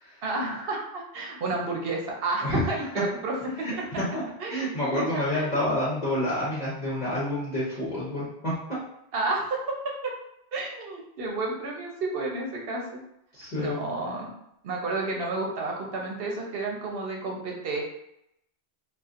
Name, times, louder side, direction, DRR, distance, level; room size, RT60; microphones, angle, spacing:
voice 1, 0.2-3.7 4.4-4.7 5.1-5.6 9.1-10.1 10.5-12.8 13.5-14.3 14.6-17.8, right 2 dB, 65° right, 0 dB, 0.9 m, -31 dB
voice 2, 3.6-4.2 4.5-8.5 13.3-13.8, left 1 dB, 45° left, -9 dB, 1.0 m, -28 dB
4.1 x 2.4 x 2.5 m, 0.78 s
omnidirectional pair, 1.1 m